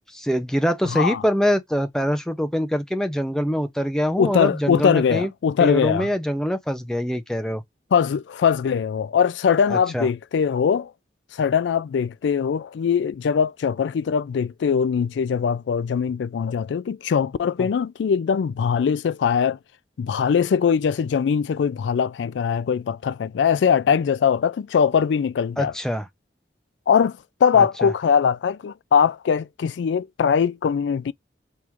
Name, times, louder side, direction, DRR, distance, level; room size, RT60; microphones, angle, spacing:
voice 1, 0.1-5.3 5.6-7.6 9.7-10.1 17.6-17.7 25.6-26.1 27.5-27.9, equal, 5° left, 0.5 m, -24 dB
voice 2, 0.9-1.2 4.2-6.1 7.9-10.9 11.3-19.6 20.0-25.7 26.9-31.1, left 7 dB, 90° left, 0.3 m, -21 dB
4.5 x 2.5 x 3.4 m
head